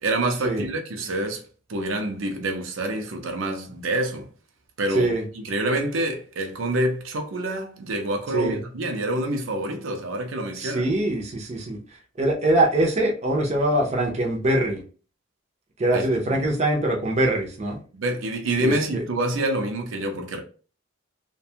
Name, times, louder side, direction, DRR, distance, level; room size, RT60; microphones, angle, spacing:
voice 1, 0.0-1.4 1.7-4.3 4.8-10.9 15.9-16.5 17.9-20.4, right 1 dB, 80° right, 0.6 m, -27 dB
voice 2, 10.6-11.8 12.2-14.8 15.8-17.8 18.6-19.0, right 1 dB, 35° right, 0.5 m, -23 dB
2.5 x 2.2 x 2.7 m
head